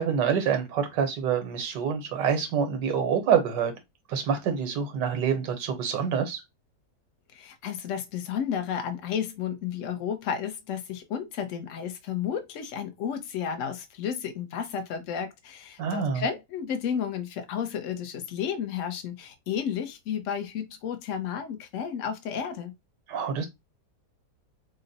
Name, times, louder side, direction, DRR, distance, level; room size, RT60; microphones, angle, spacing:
voice 1, 0.0-3.7 4.1-6.4 15.8-16.2 23.1-23.5, right 7 dB, 85° right, 1.5 m, -26 dB
voice 2, 7.3-22.7, left 8 dB, 55° left, 1.0 m, -32 dB
3.9 x 2.1 x 4.0 m
omnidirectional pair, 1.8 m